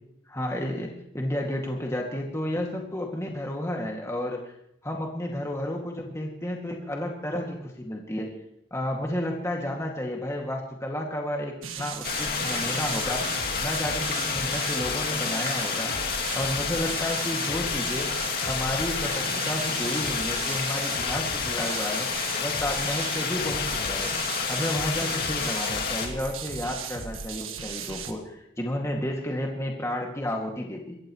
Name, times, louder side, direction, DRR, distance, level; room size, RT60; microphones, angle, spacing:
voice 1, 0.3-4.5 4.8-8.3 8.7-15.9 16.3-18.1 18.4-22.1 22.4-24.1 24.5-31.0, left 1 dB, 15° left, 0 dB, 2.2 m, -32 dB
sound 1, 11.6-28.1, right 5 dB, 85° right, 1.6 m, -37 dB
sound 2, 12.0-26.1, left 5 dB, 45° left, 2.4 m, -29 dB
26.5 x 14.5 x 3.1 m, 0.77 s
head